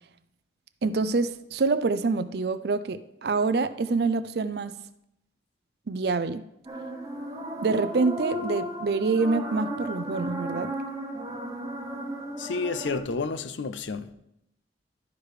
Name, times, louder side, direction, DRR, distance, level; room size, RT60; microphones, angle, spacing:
voice 1, 0.8-4.8 5.9-6.4 7.6-10.7, right 4 dB, 60° right, 0.4 m, -26 dB
sound 1, 6.7-13.0, right 1 dB, 20° right, 1.1 m, -35 dB
voice 2, 12.4-14.1, left 4 dB, 80° left, 0.6 m, -30 dB
11.5 x 4.8 x 4.9 m
head